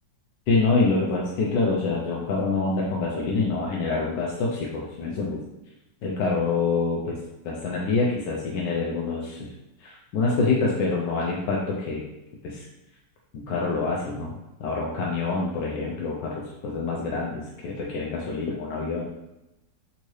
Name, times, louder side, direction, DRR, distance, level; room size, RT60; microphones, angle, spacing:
voice 1, 0.5-5.4 6.0-7.2 7.4-9.5 9.8-12.0 12.4-12.7 13.3-14.3 14.6-16.3 16.6-19.1, left 3 dB, 75° left, -3 dB, 1.2 m, -26 dB
3.6 x 2.7 x 3.1 m, 0.95 s
omnidirectional pair, 2.1 m